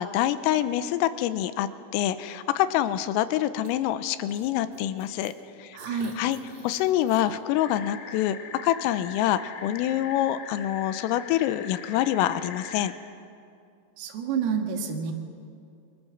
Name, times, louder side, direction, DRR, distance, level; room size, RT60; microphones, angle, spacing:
voice 1, 0.0-5.3 5.6-6.4 6.6-8.4 8.6-12.9, left 12 dB, 90° left, 12 dB, 3.5 m, -26 dB
sound 1, 3.6-3.7 4.3-5.3 5.8-7.2 7.7-7.8, right 3 dB, 25° right, 3.3 m, -48 dB
voice 2, 5.7-6.1 14.0-15.1, right 6 dB, 85° right, 4 dB, 4.5 m, -28 dB
sound 2, 7.6-12.9, left 6 dB, 70° left, 4.6 m, -42 dB
28.5 x 24.5 x 7.3 m, 2.4 s
omnidirectional pair, 5.9 m